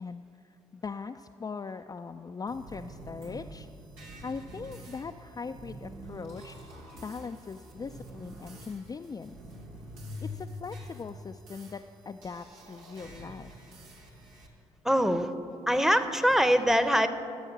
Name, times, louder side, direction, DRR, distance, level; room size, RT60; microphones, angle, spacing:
voice 1, 0.0-3.7 4.2-6.6 7.0-9.4 10.2-13.6, left 5 dB, 25° left, 6 dB, 0.4 m, -40 dB
sound 1, 2.5-14.5, equal, 85° right, 1.2 m, -46 dB
voice 2, 14.8-15.3 15.7-17.1, equal, 5° right, 10 dB, 0.8 m, -23 dB
14.5 x 7.1 x 6.0 m, 2.7 s
hypercardioid pair, 45°, 15 cm